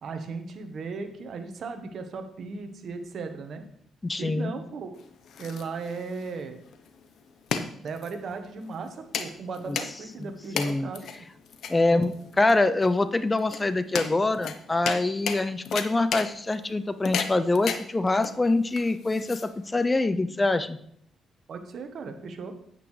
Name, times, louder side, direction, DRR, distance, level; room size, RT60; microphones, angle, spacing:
voice 1, 0.0-3.6 4.2-5.0 5.4-6.6 7.8-11.1 11.7-12.1 21.5-22.5, right 4 dB, 60° right, 6 dB, 1.2 m, -37 dB
voice 2, 4.0-4.5 9.7-9.8 10.2-10.9 11.7-20.8, left 2 dB, 20° left, 12 dB, 0.6 m, -25 dB
sound 1, 4.9-19.9, left 7 dB, 70° left, 0.8 m, -35 dB
9.1 x 8.5 x 3.3 m, 0.68 s
cardioid pair, 90°, 0 cm